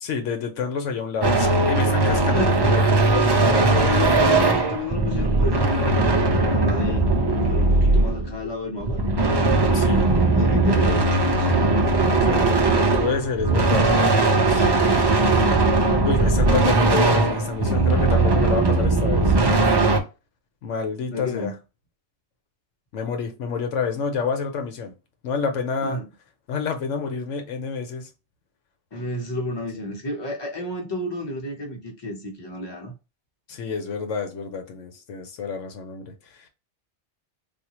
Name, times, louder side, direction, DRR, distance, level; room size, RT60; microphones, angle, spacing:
voice 1, 0.0-4.0 9.7-10.1 10.7-10.9 12.0-13.9 14.5-14.7 15.2-15.3 16.1-19.3 20.6-21.5 22.9-24.9 25.2-26.0 26.5-28.1 33.5-36.1 36.4-36.5, left 5 dB, 90° left, 1.1 m, -28 dB
sound 1, 1.2-8.4 8.8-20.0, right 2 dB, 35° right, 0.4 m, -19 dB
voice 2, 2.3-2.7 3.7-7.1 7.3-9.0 10.3-11.5 21.1-21.5 25.8-26.1 28.9-33.0, left 2 dB, 25° left, 0.8 m, -31 dB
3.5 x 2.4 x 2.9 m
omnidirectional pair, 1.2 m